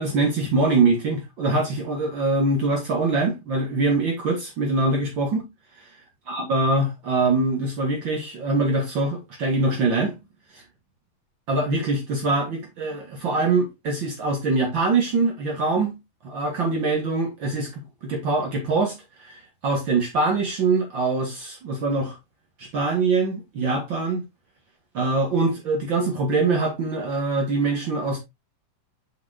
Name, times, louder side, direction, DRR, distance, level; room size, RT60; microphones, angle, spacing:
voice 1, 0.0-5.4 5.8-5.9 6.3-10.1 10.5-10.6 11.5-15.9 16.2-22.2 22.6-24.2 24.9-28.2, right 3 dB, 85° right, 1.0 m, -23 dB
7.6 x 5.7 x 2.7 m
omnidirectional pair, 4.4 m